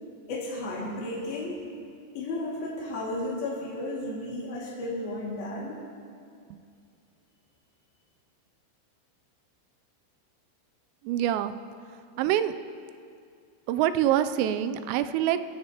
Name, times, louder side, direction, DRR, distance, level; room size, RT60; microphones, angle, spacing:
voice 1, 0.3-1.6 2.2-5.8, left 1 dB, 55° left, -7 dB, 3.6 m, -33 dB
voice 2, 11.1-11.5 12.2-12.5 13.7-15.5, right 11 dB, 90° right, 11 dB, 3.3 m, -25 dB
23.5 x 15.0 x 2.9 m, 2.3 s
omnidirectional pair, 5.8 m